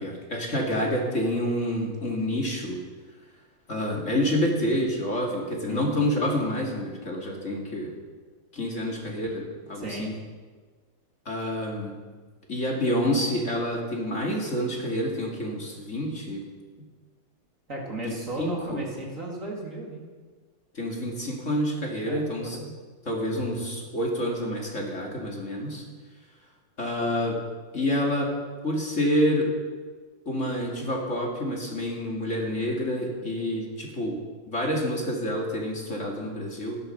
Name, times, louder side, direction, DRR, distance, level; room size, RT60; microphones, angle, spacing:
voice 1, 0.0-2.8 3.7-7.9 8.5-10.1 11.3-11.9 12.5-16.4 18.0-18.8 20.7-22.6 23.1-25.8 26.8-27.4 27.7-28.3 28.6-29.5 30.3-34.2 34.5-36.8, equal, 40° left, -1 dB, 2.7 m, -28 dB
voice 2, 9.8-10.2 17.7-20.0 22.0-22.7 23.4-23.5, right 2 dB, 45° right, -2 dB, 2.8 m, -35 dB
15.5 x 11.0 x 6.5 m, 1.4 s
omnidirectional pair, 2.0 m